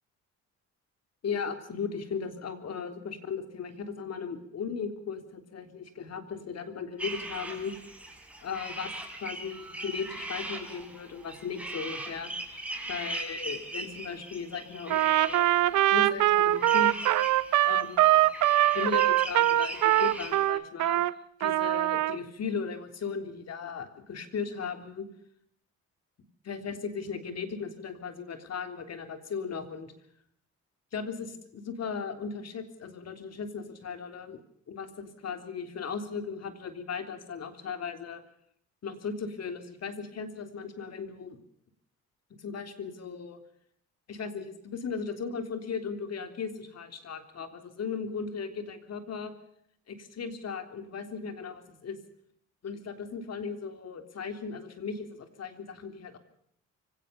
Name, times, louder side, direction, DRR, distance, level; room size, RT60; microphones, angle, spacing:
voice 1, 1.2-7.7 8.4-8.9 9.2-15.6 15.9-17.0 17.6-18.2 18.7-21.0 21.4-25.1 26.4-29.9 30.9-38.2 38.8-41.4 42.4-43.4 44.1-49.3 49.9-52.0 52.6-56.2, left 5 dB, 55° left, 8 dB, 3.5 m, -37 dB
sound 1, 7.0-20.5, right 1 dB, 5° right, 5.9 m, -40 dB
Trumpet, 14.9-21.1 21.4-22.2, right 14 dB, 80° right, 0.8 m, -23 dB
24.5 x 17.5 x 7.0 m, 0.68 s
cardioid pair, 90°, 30 cm